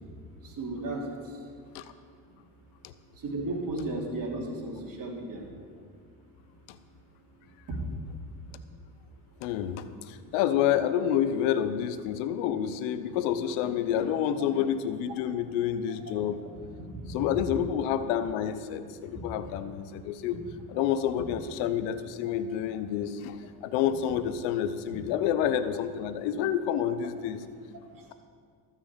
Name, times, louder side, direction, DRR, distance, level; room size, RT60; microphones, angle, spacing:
voice 1, 0.6-1.0 3.2-5.4 7.7-7.8 16.0-16.2 20.7-20.8, right 2 dB, 45° right, -1 dB, 3.2 m, -34 dB
voice 2, 9.4-16.4 17.1-27.4, left 9 dB, 80° left, 12 dB, 0.8 m, -29 dB
13.5 x 6.2 x 7.2 m, 2.1 s
supercardioid pair, 75°, 47 cm